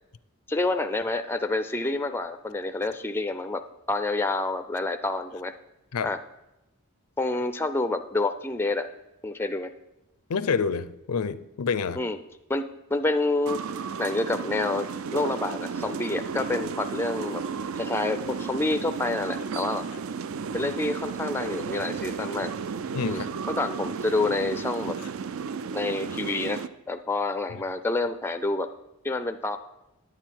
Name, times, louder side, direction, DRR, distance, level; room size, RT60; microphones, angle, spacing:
voice 1, 0.5-3.6 3.9-5.5 6.0-6.2 7.2-8.9 9.2-9.7 12.0-12.2 12.5-13.7 14.0-17.4 17.8-19.9 20.5-22.5 23.1-23.2 23.5-25.0 25.7-26.6 26.9-28.7 29.0-29.6, left 2 dB, 10° left, 9 dB, 0.4 m, -28 dB
voice 2, 10.3-12.0 22.9-23.3 27.5-27.6, left 5 dB, 90° left, 15 dB, 0.5 m, -28 dB
sound 1, 13.5-26.7, right 6 dB, 65° right, 0.4 m, -33 dB
9.7 x 8.9 x 4.5 m, 0.94 s
head